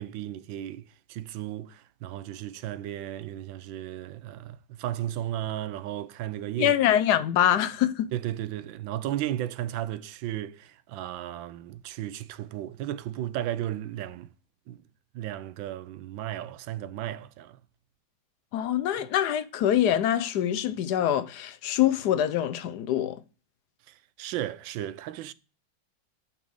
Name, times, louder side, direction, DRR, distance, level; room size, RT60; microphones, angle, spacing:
voice 1, 0.0-6.8 8.1-14.3 14.7-14.8 15.1-17.6 19.0-19.1 23.9-25.3, right 12 dB, 80° right, 1.4 m, -34 dB
voice 2, 6.6-8.1 18.5-23.2, left 11 dB, 65° left, 1.1 m, -24 dB
7.0 x 5.9 x 6.9 m
omnidirectional pair, 2.1 m